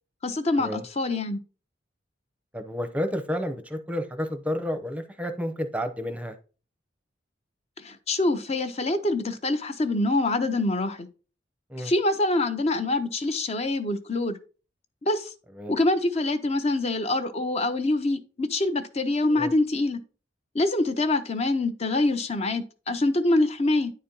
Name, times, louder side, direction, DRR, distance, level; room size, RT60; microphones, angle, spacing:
voice 1, 0.2-1.4 7.8-11.1 11.8-14.4 15.0-15.3 15.7-20.0 20.5-23.9, left 2 dB, 35° left, 0.7 m, -25 dB
voice 2, 2.5-6.4 11.7-11.9 15.6-15.8 19.3-19.5, equal, 5° right, 0.7 m, -31 dB
9.6 x 4.2 x 3.8 m
head